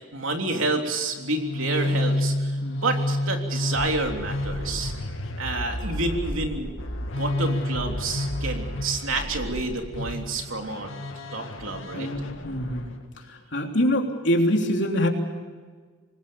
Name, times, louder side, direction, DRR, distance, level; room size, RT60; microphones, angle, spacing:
voice 1, 0.1-4.9 5.4-6.7 7.2-10.9 11.3-12.1, right 3 dB, 90° right, 3 dB, 3.4 m, -29 dB
sound 1, 1.2-13.0, left 1 dB, 80° left, 2.3 m, -30 dB
voice 2, 11.9-12.9 13.5-15.1, equal, 65° left, 2 dB, 3.3 m, -24 dB
25.5 x 20.5 x 7.1 m, 1.5 s
head